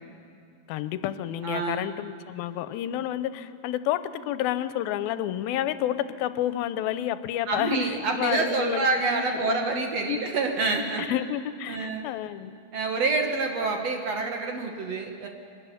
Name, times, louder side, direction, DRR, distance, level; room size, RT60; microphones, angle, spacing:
voice 1, 0.7-9.8 10.1-10.2 11.0-12.5, left 12 dB, 90° left, 13 dB, 2.5 m, -30 dB
voice 2, 1.4-1.8 7.5-11.2 11.7-12.1 12.7-15.3, right 3 dB, 55° right, 3 dB, 2.1 m, -27 dB
23.0 x 12.5 x 9.9 m, 2.4 s
omnidirectional pair, 4.2 m